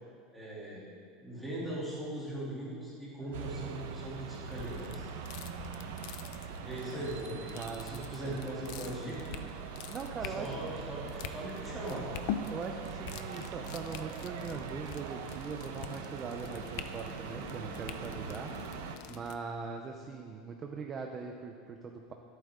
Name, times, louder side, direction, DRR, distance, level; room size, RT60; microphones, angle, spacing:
voice 1, 0.3-0.8 1.2-5.1 6.6-9.4 10.2-12.1, right 1 dB, ahead, -9 dB, 2.9 m, -40 dB
sound 1, 3.3-19.0, right 6 dB, 85° right, 1.2 m, -42 dB
sound 2, 4.4-19.4, left 9 dB, 45° left, 0.6 m, -45 dB
voice 2, 7.3-8.4 9.9-10.7 12.5-18.8 19.1-22.1, right 5 dB, 20° right, 3 dB, 0.6 m, -41 dB
25.0 x 9.0 x 3.8 m, 2.4 s
supercardioid pair, 180°, 0 cm